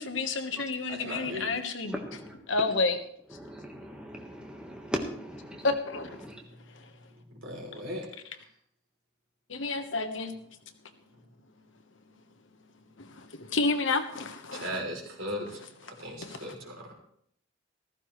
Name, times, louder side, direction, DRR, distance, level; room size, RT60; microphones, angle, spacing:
voice 1, 0.0-1.9 2.5-3.0 5.6-6.1 9.5-10.3 13.0-14.8 16.2-16.5, left 3 dB, 70° left, 7 dB, 1.3 m, -30 dB
voice 2, 0.9-1.7 7.3-8.1 14.5-15.6 16.0-16.9, equal, 80° right, 0 dB, 3.5 m, -37 dB
voice 3, 1.8-2.7 3.3-5.7 6.2-6.4, equal, 5° right, 1 dB, 1.5 m, -38 dB
14.5 x 14.0 x 3.2 m, 0.68 s
head